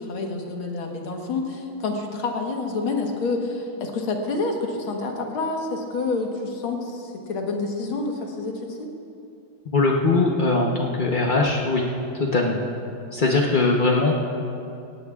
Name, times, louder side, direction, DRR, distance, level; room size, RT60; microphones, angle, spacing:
voice 1, 0.0-8.9, left 3 dB, 85° left, 2 dB, 2.1 m, -28 dB
voice 2, 9.7-11.9 12.1-12.6 13.1-14.1, left 3 dB, 65° left, -1 dB, 0.5 m, -21 dB
17.5 x 17.5 x 2.4 m, 2.7 s
omnidirectional pair, 2.2 m